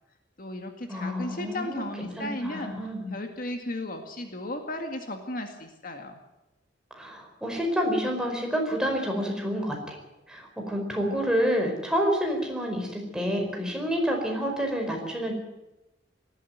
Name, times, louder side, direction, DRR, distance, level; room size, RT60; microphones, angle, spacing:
voice 1, 0.4-2.7 3.1-6.2, left 1 dB, 50° left, 5 dB, 2.1 m, -35 dB
voice 2, 0.9-3.2 6.9-10.0 10.3-15.3, equal, 5° right, 1 dB, 5.0 m, -28 dB
19.0 x 14.5 x 9.4 m, 1.0 s
head